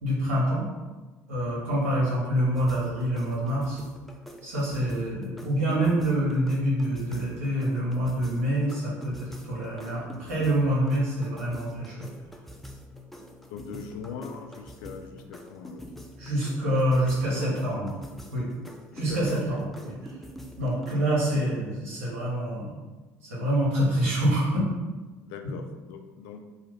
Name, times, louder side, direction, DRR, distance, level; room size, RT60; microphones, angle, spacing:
voice 1, 0.0-0.7 1.3-3.8 4.4-12.1 16.2-17.9 18.3-18.5 18.9-20.0 20.6-22.8 23.3-24.7 25.4-25.5, right 1 dB, 85° right, -7 dB, 1.2 m, -26 dB
voice 2, 2.0-2.3 13.5-15.9 17.1-17.6 18.9-19.6 21.3-21.4 23.8-24.1 25.2-26.5, left 6 dB, 75° left, 6 dB, 0.3 m, -41 dB
sound 1, 2.5-21.0, equal, ahead, 0.4 m, -46 dB
2.8 x 2.4 x 3.2 m, 1.3 s
hypercardioid pair, 70°, 7 cm